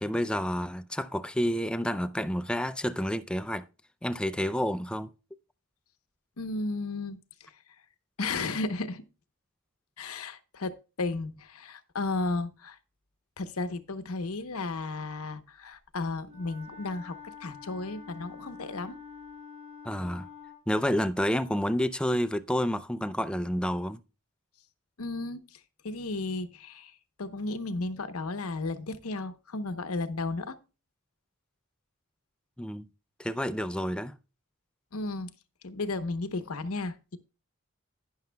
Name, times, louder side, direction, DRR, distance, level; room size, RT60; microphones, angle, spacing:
voice 1, 0.0-3.7 4.0-5.1 19.8-20.3 20.7-24.0 32.6-32.8 33.2-34.2, equal, 5° left, 0.4 m, -29 dB
voice 2, 6.4-7.2 8.2-9.0 10.0-12.8 13.4-19.0 25.0-25.6 25.8-26.9 27.2-30.6 34.9-35.3 35.6-37.2, left 3 dB, 85° left, 0.9 m, -34 dB
Wind instrument woodwind instrument, 16.2-20.7, left 6 dB, 35° right, 5.4 m, -47 dB
11.5 x 10.5 x 2.3 m
head